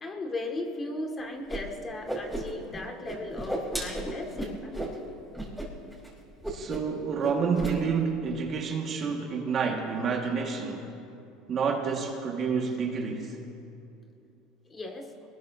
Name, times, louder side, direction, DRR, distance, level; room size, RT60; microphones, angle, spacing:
voice 1, 0.0-4.7 14.7-15.1, left 2 dB, 30° left, 2 dB, 2.3 m, -36 dB
Whoosh swoosh swish, 1.5-1.6 1.9-2.8 3.1-4.9 5.3-5.7 5.9-6.1 6.4-6.9 7.2-7.7, right 1 dB, ahead, 4.8 m, -34 dB
voice 2, 6.5-10.9 11.5-13.4, right 5 dB, 45° right, 1 dB, 2.0 m, -29 dB
23.0 x 20.0 x 2.9 m, 2.7 s
supercardioid pair, 95°, 0 cm